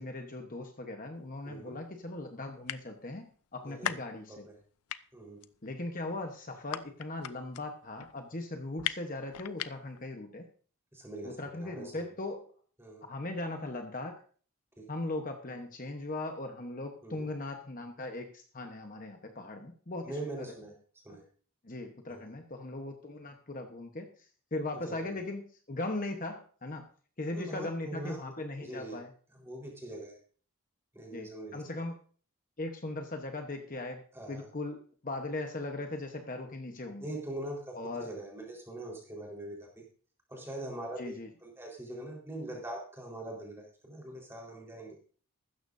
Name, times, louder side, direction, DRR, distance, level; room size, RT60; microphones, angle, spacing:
voice 1, 0.0-4.5 5.6-10.5 11.2-12.5 13.1-14.1 14.9-20.0 20.4-20.5 21.6-24.1 24.5-26.9 27.2-29.1 31.1-32.0 32.6-34.0 34.3-37.0 37.7-38.1 41.0-41.3, left 2 dB, 40° left, 4 dB, 1.1 m, -39 dB
sound 1, 1.2-1.3 1.9-2.0 2.2-2.3 2.5-3.2 3.5-4.6 4.9-10.1, left 10 dB, 90° left, 0.6 m, -38 dB
voice 2, 1.4-1.8 3.7-3.9 4.3-4.5 5.1-5.5 10.9-12.1 12.8-13.0 14.8-14.9 17.0-17.3 20.0-20.7 21.0-21.3 22.1-22.3 24.7-25.1 27.3-28.2 28.6-29.0 29.4-30.1 30.9-31.8 34.1-34.5 37.0-39.7 40.3-45.0, right 1 dB, 10° right, -1 dB, 4.1 m, -42 dB
15.0 x 13.0 x 2.7 m, 0.43 s
head